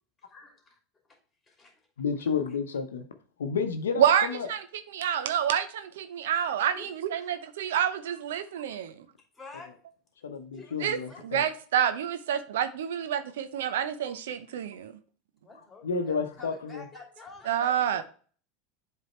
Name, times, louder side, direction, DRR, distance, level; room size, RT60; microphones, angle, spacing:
voice 1, 2.0-3.0 3.4-4.5 10.2-11.4 15.8-16.9, left 5 dB, 85° left, 0.7 m, -31 dB
voice 2, 4.0-9.1 10.8-15.0 17.5-18.0, right 9 dB, 75° right, 0.6 m, -28 dB
voice 3, 9.3-9.8 10.5-11.6 15.4-18.0, left 3 dB, 20° left, 2.8 m, -48 dB
7.6 x 3.4 x 4.3 m
hypercardioid pair, 90°, 0 cm